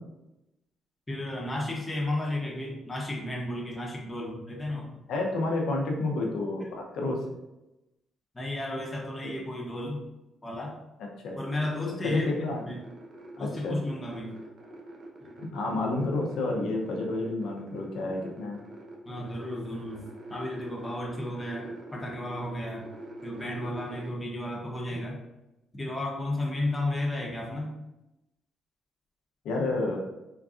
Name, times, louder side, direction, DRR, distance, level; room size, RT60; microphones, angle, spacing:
voice 1, 1.1-4.9 6.6-6.7 8.3-10.0 10.4-10.8 11.3-12.3 12.7-12.8 13.4-14.3 19.0-22.9 23.2-25.2 25.8-27.7, left 1 dB, 15° left, -2 dB, 0.9 m, -33 dB
voice 2, 5.1-7.2 11.2-11.4 12.0-12.6 13.4-13.8 15.5-18.6 29.4-30.0, left 2 dB, 80° left, 0 dB, 0.7 m, -30 dB
sound 1, 11.4-24.1, right 2 dB, 50° right, 0.8 m, -45 dB
3.8 x 2.3 x 2.5 m, 0.96 s
cardioid pair, 90°, 0 cm